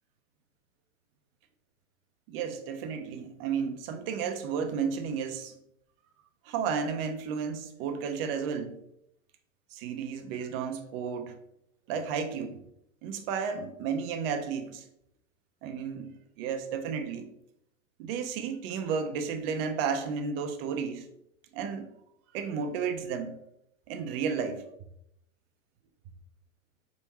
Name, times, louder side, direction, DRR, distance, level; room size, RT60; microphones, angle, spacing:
voice 1, 2.3-5.5 6.4-8.7 9.7-11.4 11.9-12.6 13.0-14.9 15.6-17.3 18.0-21.1 21.5-21.9 22.3-23.4 23.9-24.6, right 6 dB, 40° right, 7 dB, 0.6 m, -32 dB
4.3 x 3.6 x 2.9 m, 0.77 s
hypercardioid pair, 115°, 43 cm